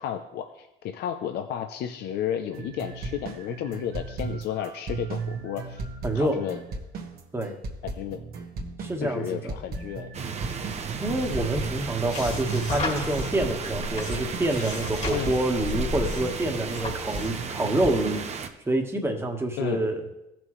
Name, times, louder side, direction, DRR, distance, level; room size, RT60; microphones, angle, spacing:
voice 1, 0.0-5.8 6.1-6.6 7.8-8.2 9.0-10.1 15.1-15.4 19.6-19.8, left 10 dB, 75° left, 6 dB, 0.6 m, -32 dB
sound 1, 2.5-16.8 17.1-18.3, right 3 dB, 65° right, 1.5 m, -36 dB
voice 2, 6.0-6.5 7.3-7.6 8.8-9.2 11.0-18.2 18.6-20.0, right 1 dB, 15° right, 3 dB, 1.4 m, -27 dB
sound 2, 10.1-18.5, right 6 dB, 40° right, 0.9 m, -35 dB
sound 3, 10.7-17.5, left 3 dB, 45° left, 2.0 m, -35 dB
15.5 x 6.0 x 3.2 m, 0.93 s
cardioid pair, 110°, 17 cm